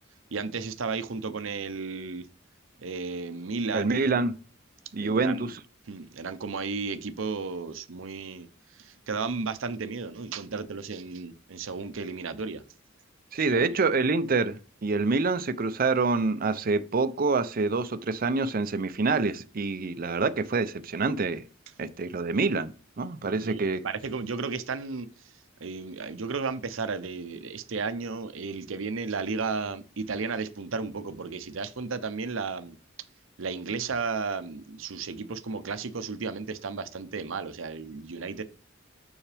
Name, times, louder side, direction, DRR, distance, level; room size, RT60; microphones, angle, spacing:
voice 1, 0.3-2.3 2.8-4.2 5.0-5.5 5.9-12.6 13.4-13.8 23.4-25.3 25.6-32.8 33.4-38.4, right 4 dB, 80° right, 0.7 m, -34 dB
voice 2, 3.7-4.3 4.9-5.5 13.3-21.4 21.8-22.7 23.0-23.8, right 3 dB, 45° right, 0.6 m, -26 dB
7.3 x 6.3 x 3.4 m
head